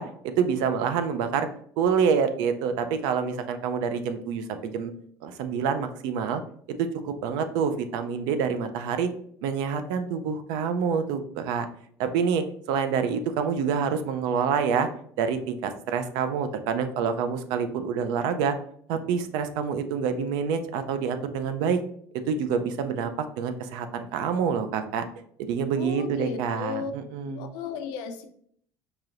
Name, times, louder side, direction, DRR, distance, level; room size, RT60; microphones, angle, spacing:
voice 1, 0.0-1.5 1.8-4.9 5.2-6.4 6.8-9.1 9.4-11.7 12.0-14.9 15.2-18.6 18.9-21.8 22.3-25.1 25.4-27.5, right 6 dB, 85° right, 9 dB, 0.4 m, -27 dB
voice 2, 25.8-26.9 27.2-28.3, left 6 dB, 85° left, 7 dB, 0.5 m, -34 dB
4.8 x 2.8 x 2.5 m, 0.63 s
cardioid pair, 170°, 7 cm